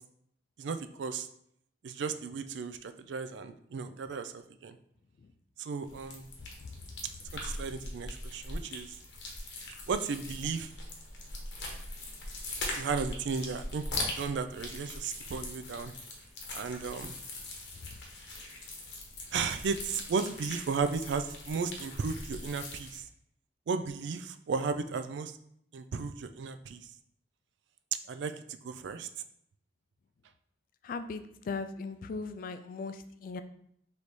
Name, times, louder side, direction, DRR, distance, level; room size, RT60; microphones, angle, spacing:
voice 1, 0.6-1.3 1.8-4.8 5.6-6.3 7.3-8.9 9.9-10.7 12.7-13.8 14.2-15.9 16.5-17.1 19.3-23.0 23.7-25.3 25.7-26.8 28.1-28.4 28.6-29.1, right 5 dB, 80° right, 10 dB, 0.4 m, -34 dB
sound 1, 5.8-23.0, left 2 dB, 80° left, 0.9 m, -41 dB
voice 2, 30.8-33.4, left 4 dB, 50° left, 10 dB, 0.3 m, -38 dB
4.0 x 3.3 x 3.1 m, 0.70 s
head